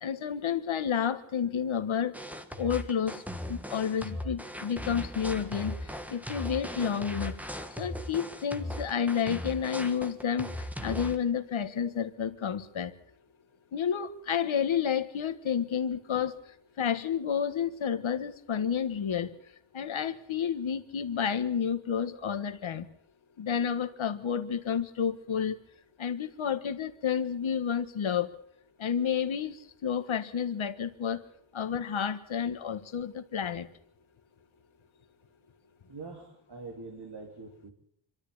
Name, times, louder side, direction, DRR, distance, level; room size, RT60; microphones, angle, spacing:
voice 1, 0.0-2.1 2.6-3.2 3.5-7.4 7.8-12.9 13.7-16.3 16.8-19.3 19.7-22.9 23.4-25.6 26.0-28.3 28.8-31.2 31.5-33.7, left 7 dB, 90° left, 10 dB, 1.6 m, -30 dB
sound 1, 2.1-11.2, equal, 5° right, 1.5 m, -38 dB
voice 2, 35.9-37.7, right 3 dB, 55° right, 1 dB, 3.4 m, -44 dB
26.0 x 13.0 x 8.7 m, 0.69 s
wide cardioid pair, 165°, 46 cm